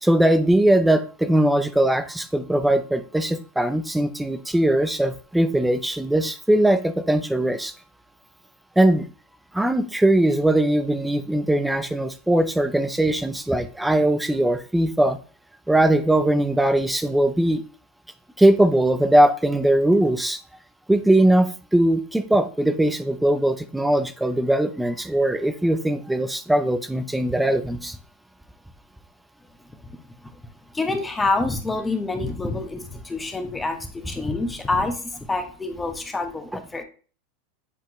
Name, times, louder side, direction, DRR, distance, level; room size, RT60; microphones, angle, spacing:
voice 1, 0.0-7.7 8.8-9.1 9.5-15.2 15.7-17.6 18.4-20.4 20.9-28.0, right 1 dB, 5° right, 10 dB, 0.7 m, -20 dB
voice 2, 30.7-36.8, left 3 dB, 15° left, 5 dB, 1.3 m, -27 dB
8.1 x 4.3 x 3.1 m, 0.38 s
hypercardioid pair, 105°, 0 cm